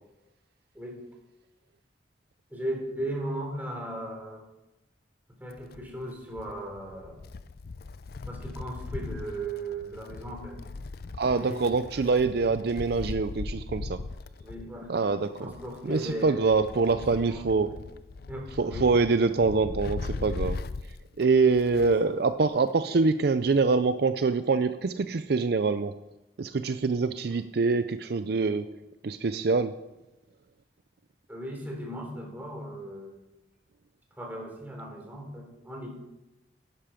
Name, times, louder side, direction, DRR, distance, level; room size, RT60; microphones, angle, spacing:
voice 1, 2.5-4.4 5.4-7.2 8.3-10.6 11.2-11.8 14.4-15.0 15.3-17.8 18.2-18.9 21.7-22.1 31.3-33.2 34.1-35.9, right 1 dB, 10° right, 0 dB, 3.4 m, -37 dB
Wind, 5.5-22.1 22.4-22.5 23.5-23.6, left 3 dB, 55° left, 0.4 m, -39 dB
voice 2, 11.2-14.0 14.9-15.5 15.8-17.7 18.6-20.6 21.2-25.9 26.4-28.7 29.0-29.7, right 4 dB, 60° right, 11 dB, 0.5 m, -25 dB
11.5 x 11.5 x 5.1 m, 0.98 s
head